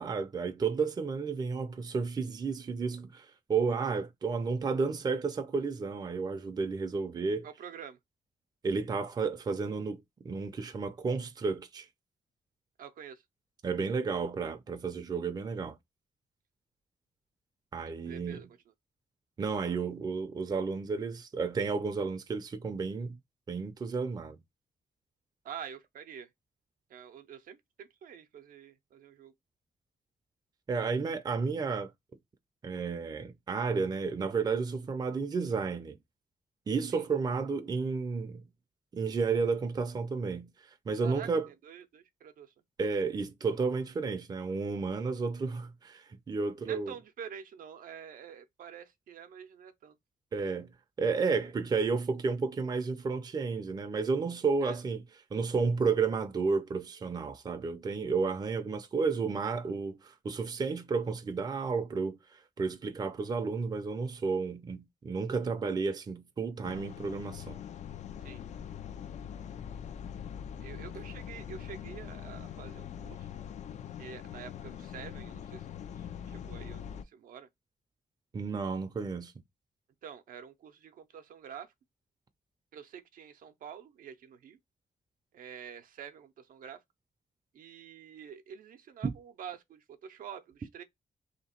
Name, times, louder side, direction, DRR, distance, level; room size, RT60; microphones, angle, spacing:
voice 1, 0.0-7.5 8.6-11.9 13.6-15.8 17.7-18.5 19.4-23.2 23.5-24.4 30.7-31.9 32.6-36.0 36.7-38.4 38.9-40.5 40.9-41.5 42.8-46.9 50.3-50.7 51.0-55.0 55.3-62.2 62.6-67.6 78.3-79.3 89.0-89.1, right 4 dB, 30° right, 0.5 m, -32 dB
voice 2, 7.4-8.0 12.8-13.2 18.0-18.5 25.4-26.3 26.9-29.3 36.9-37.0 41.0-42.5 46.6-50.0 54.6-54.8 68.2-68.4 70.6-73.3 74.0-75.7 76.0-77.5 80.0-81.7 82.7-84.6 85.3-86.8 87.5-90.8, right 8 dB, 75° right, 0.6 m, -47 dB
sound 1, 66.6-77.0, left 9 dB, 55° left, 0.4 m, -43 dB
3.1 x 2.9 x 4.3 m
wide cardioid pair, 160°, 14 cm